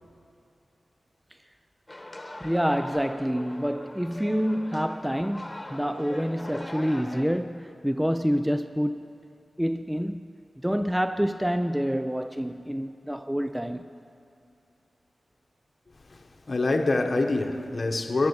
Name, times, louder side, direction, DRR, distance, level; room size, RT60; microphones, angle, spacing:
sound 1, 1.9-7.2, left 1 dB, 20° left, 1.3 m, -41 dB
voice 1, 2.4-9.1 9.6-10.3 10.6-14.0, equal, 5° right, 0.4 m, -27 dB
voice 2, 16.1-18.3, left 2 dB, 50° left, 0.9 m, -26 dB
14.5 x 12.0 x 6.8 m
cardioid pair, 60°, 0 cm